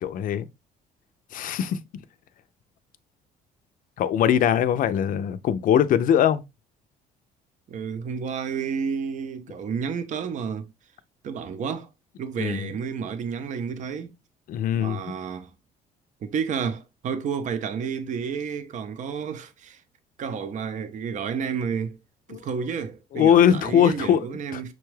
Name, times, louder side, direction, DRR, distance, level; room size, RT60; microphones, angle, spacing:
voice 1, 0.0-0.5 1.3-1.8 4.0-6.4 12.4-12.7 14.5-15.0 22.3-22.4 23.1-24.3 24.5-24.6, left 9 dB, 55° left, 0.5 m, -21 dB
voice 2, 7.7-10.7 11.2-11.9 12.2-14.1 14.7-15.5 16.2-19.8 20.2-22.0 22.3-24.7, right 6 dB, 45° right, 0.6 m, -31 dB
6.1 x 2.3 x 3.1 m
cardioid pair, 110°, 17 cm